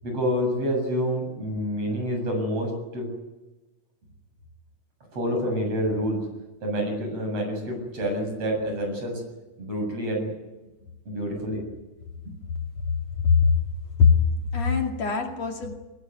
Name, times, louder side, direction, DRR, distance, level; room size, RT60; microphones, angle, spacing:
voice 1, 0.0-3.1 5.1-6.3 6.6-9.2 9.6-10.3 11.1-11.6, equal, 50° right, 3 dB, 8.5 m, -28 dB
voice 2, 13.2-13.5 14.0-14.2 14.5-15.7, left 5 dB, 60° left, 3 dB, 3.5 m, -21 dB
22.5 x 18.5 x 9.5 m, 1.1 s
omnidirectional pair, 3.5 m